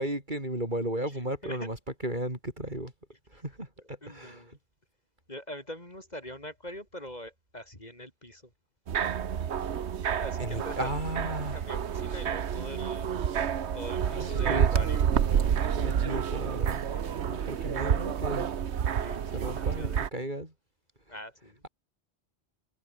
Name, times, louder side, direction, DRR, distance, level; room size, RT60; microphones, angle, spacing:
voice 1, 0.0-1.8 2.0-2.9 3.3-4.6 10.4-11.6 14.0-14.9 15.7-16.8 17.3-18.5 19.3-20.5, right 1 dB, 45° right, 6.4 m, -35 dB
voice 2, 4.0-4.5 5.3-8.4 10.2-11.0 11.5-13.2 13.7-15.0 16.9-17.3 18.9-20.1 21.1-21.6, left 1 dB, 40° left, 6.1 m, -43 dB
sound 1, 8.9-20.1, right 8 dB, 80° right, 1.3 m, -29 dB
omnidirectional pair, 1.1 m